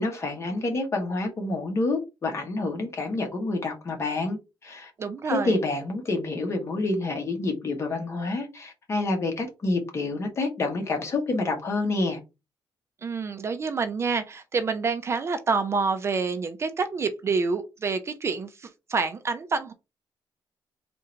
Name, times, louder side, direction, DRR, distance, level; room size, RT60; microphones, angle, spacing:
voice 1, 0.0-4.9 5.2-12.2, left 2 dB, 35° left, 1.2 m, -28 dB
voice 2, 5.0-5.5 13.0-19.7, right 4 dB, 30° right, 0.4 m, -27 dB
3.7 x 2.6 x 4.3 m
wide cardioid pair, 175°, 9 cm